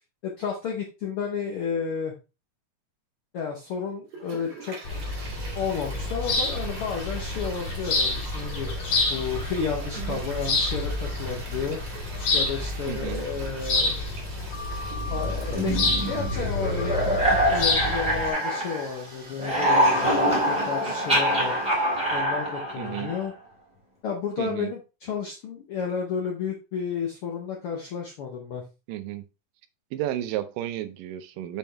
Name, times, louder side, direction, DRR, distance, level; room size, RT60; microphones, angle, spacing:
voice 1, 0.2-2.1 3.3-4.8 5.5-14.0 15.1-15.7 16.0-17.2 17.5-21.5 22.1-23.3 24.0-28.6, left 6 dB, 75° left, 1.3 m, -32 dB
Toilet flush, 4.1-22.0, right 3 dB, 55° right, 3.0 m, -44 dB
sound 1, 4.8-18.3, left 2 dB, 55° left, 2.6 m, -29 dB
voice 2, 12.9-13.2 22.8-23.1 24.4-24.7 28.9-29.2 29.9-31.6, right 13 dB, 85° right, 2.3 m, -32 dB
sound 2, 15.5-19.0 19.3-23.3, right 1 dB, ahead, 2.2 m, -25 dB
7.0 x 4.4 x 3.3 m
omnidirectional pair, 3.8 m